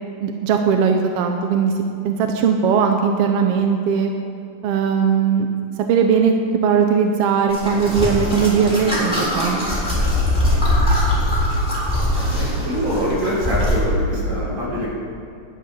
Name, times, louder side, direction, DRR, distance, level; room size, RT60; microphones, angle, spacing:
voice 1, 0.2-1.7 2.0-4.1 4.6-5.5 5.9-6.3 6.6-9.8, right 6 dB, 75° right, 4 dB, 1.5 m, -19 dB
sound 1, 7.5-13.8, left 1 dB, ahead, 3.2 m, -21 dB
voice 2, 12.3-14.9, equal, 50° right, -6 dB, 4.4 m, -24 dB
11.0 x 9.6 x 6.1 m, 2.6 s
omnidirectional pair, 3.3 m